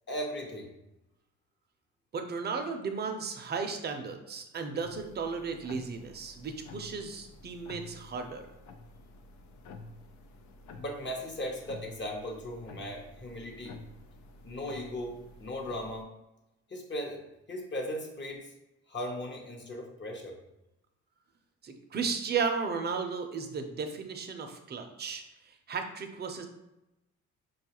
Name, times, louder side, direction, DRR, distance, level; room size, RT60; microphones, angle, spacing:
voice 1, 0.1-0.7 10.8-13.8 14.4-16.1 16.7-17.2 17.5-18.5 18.9-20.4, equal, 35° left, 1 dB, 0.8 m, -37 dB
voice 2, 2.1-8.5 21.6-26.5, right 5 dB, 35° right, 5 dB, 0.5 m, -35 dB
sound 1, 4.8-16.0, left 2 dB, 75° left, 0.5 m, -50 dB
4.5 x 2.3 x 2.9 m, 0.91 s
cardioid pair, 90°, 30 cm